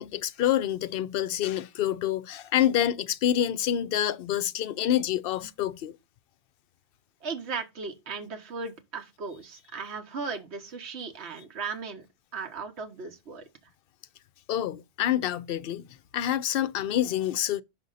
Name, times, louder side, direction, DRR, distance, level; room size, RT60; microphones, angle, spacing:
voice 1, 0.0-6.0 14.5-15.9 16.1-17.6, left 11 dB, 65° left, 0.7 m, -27 dB
voice 2, 7.2-12.1 12.3-13.5, right 4 dB, 80° right, 1.3 m, -37 dB
5.8 x 5.3 x 3.9 m
omnidirectional pair, 1.1 m